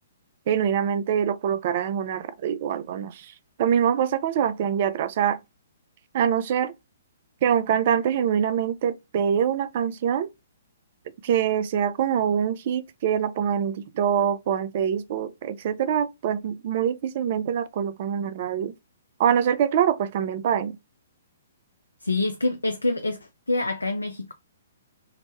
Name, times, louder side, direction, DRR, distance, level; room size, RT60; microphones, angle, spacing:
voice 1, 0.5-3.3 3.6-5.4 6.1-6.7 7.4-10.3 11.2-18.7 19.2-20.8, right 8 dB, 45° right, 0.3 m, -24 dB
voice 2, 22.0-23.2 23.5-24.3, left 2 dB, 80° left, 0.3 m, -26 dB
2.9 x 2.1 x 2.8 m
figure-of-eight pair, 120°, 0 cm